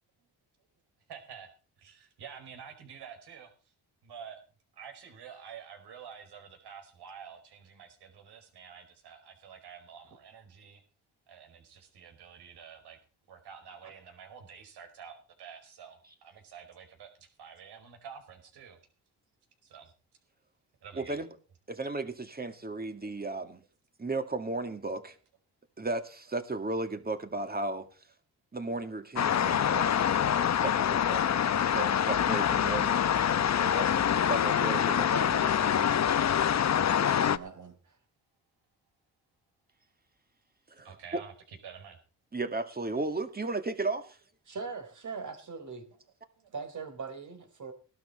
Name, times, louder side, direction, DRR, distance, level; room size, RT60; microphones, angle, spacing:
voice 1, 1.1-1.5 1.8-3.5 4.0-4.4 4.7-10.8 11.3-13.0 13.3-18.8 19.6-19.9 20.8-21.2 22.8-23.1 40.8-42.0 46.4-46.5, right 7 dB, 80° right, 5.1 m, -49 dB
voice 2, 21.0-21.3 21.7-23.6 24.0-25.2 25.8-27.9 28.5-33.0 33.6-35.5 40.8-40.9 41.1-41.2 42.3-44.2, right 2 dB, 25° right, 2.2 m, -35 dB
sound 1, 29.2-37.4, left 9 dB, 45° left, 0.8 m, -26 dB
voice 3, 35.0-35.3 35.6-36.2 36.9-38.0 44.5-45.9 46.5-47.7, right 5 dB, 50° right, 4.2 m, -41 dB
17.5 x 12.5 x 4.3 m
cardioid pair, 85°, 39 cm